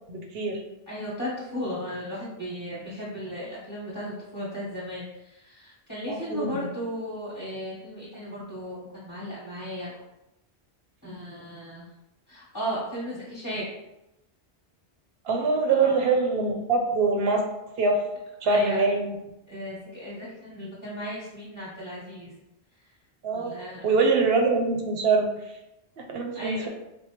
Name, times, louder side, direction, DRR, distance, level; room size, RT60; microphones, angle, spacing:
voice 1, 0.1-0.6 6.1-6.7 15.2-17.4 17.8-18.0 18.4-19.1 23.2-23.5 23.8-25.3 26.0-26.7, right 3 dB, 70° right, 2 dB, 0.8 m, -24 dB
voice 2, 0.9-9.9 11.0-11.9 12.3-13.7 15.7-16.0 18.4-18.8 19.5-22.3 23.3-23.9 26.3-26.7, equal, 20° left, -9 dB, 1.2 m, -35 dB
4.3 x 2.0 x 2.9 m, 0.90 s
omnidirectional pair, 1.1 m